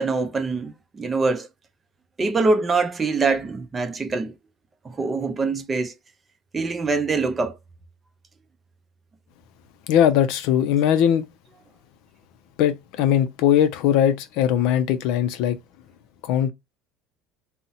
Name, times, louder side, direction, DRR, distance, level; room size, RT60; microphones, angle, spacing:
voice 1, 0.0-1.5 2.2-4.3 4.8-5.9 6.5-7.6, right 3 dB, 20° right, 0.5 m, -24 dB
voice 2, 9.9-11.2 12.6-15.6 16.2-16.5, left 10 dB, 70° left, 0.4 m, -20 dB
2.7 x 2.0 x 3.9 m
cardioid pair, 130°, 0 cm